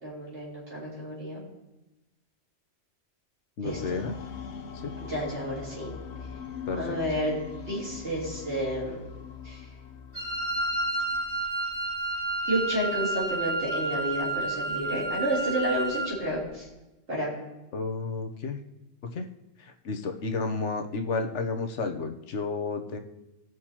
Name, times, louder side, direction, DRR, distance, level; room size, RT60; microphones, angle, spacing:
voice 1, 0.0-1.4 3.6-4.0 5.1-5.9 6.8-7.3 7.7-9.0 9.4-9.6 12.5-16.6 17.1-17.3, equal, 75° right, -7 dB, 3.9 m, -30 dB
voice 2, 3.6-4.1 4.8-4.9 6.7-7.0 17.7-18.6 19.0-19.3 19.6-23.0, left 4 dB, 90° left, 5 dB, 1.2 m, -32 dB
sound 1, 3.6-11.8, left 7 dB, 70° left, 1.0 m, -41 dB
Wind instrument woodwind instrument, 10.1-16.2, right 2 dB, 25° right, 4.0 m, -30 dB
17.5 x 6.2 x 2.9 m, 1.0 s
omnidirectional pair, 1.2 m